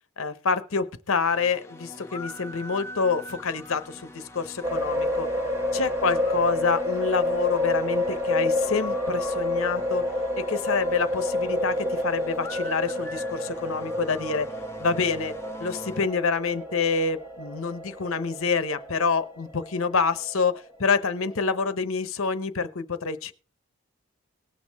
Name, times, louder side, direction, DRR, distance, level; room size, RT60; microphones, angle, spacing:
voice 1, 0.2-5.3 5.7-10.0 10.4-14.5 14.8-15.3 15.6-23.3, left 5 dB, 70° left, 0.8 m, -27 dB
sound 1, 1.2-16.1, left 1 dB, 10° left, 0.6 m, -42 dB
sound 2, 4.6-21.6, left 1 dB, 10° right, 1.2 m, -29 dB
19.0 x 6.4 x 3.5 m
head